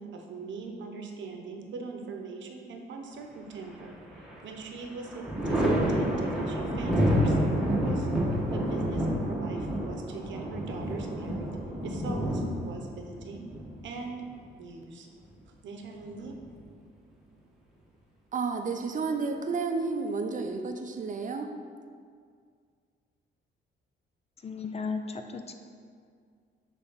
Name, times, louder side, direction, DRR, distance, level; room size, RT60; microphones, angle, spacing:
voice 1, 0.0-8.1 8.5-11.6 11.8-13.5 13.8-14.2 14.6-15.1 15.5-16.4, right 4 dB, 70° right, 3 dB, 0.9 m, -41 dB
Thunder, 3.6-4.4 4.8-14.4 15.8-16.7, equal, ahead, 1.4 m, -29 dB
voice 2, 18.3-21.5, right 4 dB, 40° right, 5 dB, 0.6 m, -31 dB
voice 3, 24.4-25.5, left 4 dB, 30° left, 6 dB, 0.5 m, -35 dB
6.4 x 3.5 x 5.7 m, 2.1 s
cardioid pair, 90°, 20 cm